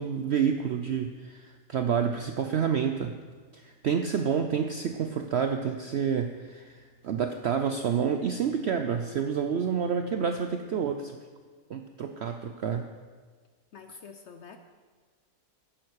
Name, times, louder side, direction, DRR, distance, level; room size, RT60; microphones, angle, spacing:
voice 1, 0.0-3.2 3.5-11.2 11.7-12.9, right 7 dB, 70° right, 6 dB, 0.6 m, -29 dB
voice 2, 13.7-14.6, left 5 dB, 60° left, 7 dB, 0.8 m, -46 dB
10.5 x 10.5 x 4.7 m, 1.5 s
omnidirectional pair, 1.7 m